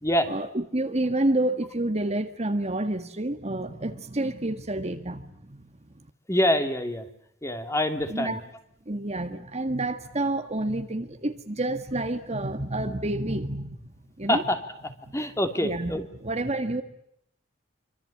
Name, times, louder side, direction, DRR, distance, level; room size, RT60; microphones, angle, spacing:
voice 1, 0.3-5.7 8.1-8.4 8.9-13.9 14.2-14.5 15.0-15.1 15.6-16.8, right 1 dB, 35° right, 1.8 m, -29 dB
voice 2, 6.3-7.0 7.4-8.4 14.3-14.6 15.1-16.0, left 1 dB, 15° left, 3.0 m, -25 dB
26.5 x 25.5 x 8.8 m
head